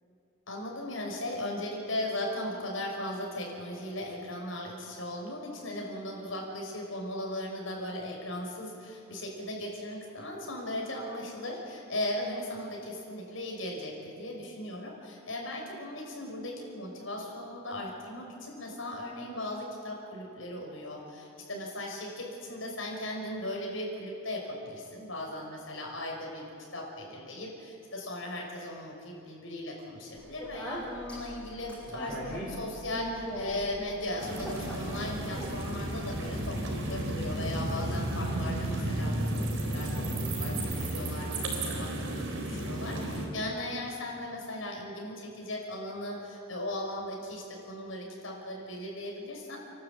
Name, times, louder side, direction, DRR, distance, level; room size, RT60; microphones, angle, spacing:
voice 1, 0.5-49.6, left 1 dB, 80° left, -1 dB, 6.0 m, -37 dB
Speech, 30.1-36.2, equal, 5° left, 7.8 m, -41 dB
sound 1, 34.2-43.3, right 1 dB, 75° right, 4.0 m, -33 dB
30.0 x 12.5 x 8.6 m, 2.7 s
head